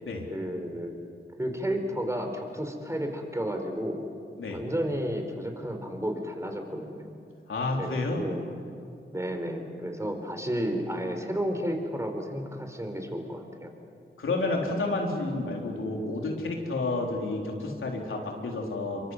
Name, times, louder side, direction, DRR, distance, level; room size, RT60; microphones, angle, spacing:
voice 1, 0.3-0.9 1.4-4.0 4.5-7.2 7.8-8.5 9.1-13.7, equal, 15° right, 5 dB, 4.5 m, -32 dB
voice 2, 7.5-8.2 14.2-19.1, left 2 dB, 90° left, 0 dB, 4.0 m, -30 dB
27.0 x 24.0 x 8.2 m, 2.5 s
cardioid pair, 60°, 20 cm